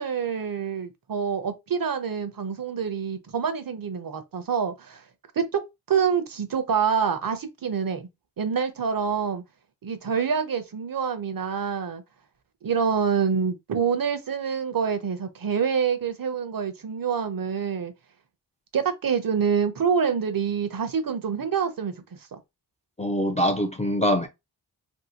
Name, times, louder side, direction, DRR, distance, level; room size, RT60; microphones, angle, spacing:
voice 1, 0.0-5.0 5.4-5.6 5.9-8.0 8.4-9.4 9.8-12.0 12.6-17.9 18.7-21.9, right 6 dB, 55° right, 0.6 m, -26 dB
voice 2, 23.0-24.3, equal, 15° left, 0.4 m, -23 dB
2.7 x 2.7 x 2.8 m
wide cardioid pair, 80°, 42 cm